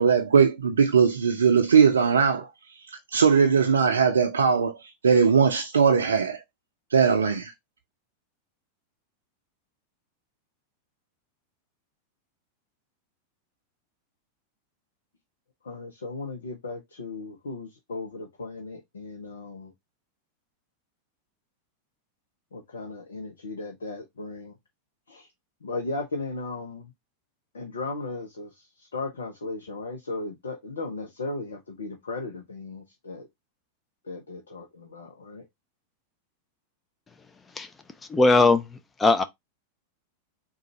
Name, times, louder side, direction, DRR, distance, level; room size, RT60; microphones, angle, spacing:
voice 1, 0.0-2.5 3.1-4.8 5.0-6.4 6.9-7.5, right 6 dB, 70° right, 0.5 m, -20 dB
voice 2, 15.6-19.7 22.5-24.5 25.1-25.3 25.6-26.9 27.5-33.3 34.1-35.4, left 3 dB, 70° left, 0.7 m, -36 dB
voice 3, 38.1-39.2, left 3 dB, 15° left, 0.5 m, -20 dB
3.8 x 2.4 x 4.1 m
figure-of-eight pair, 90°, 0 cm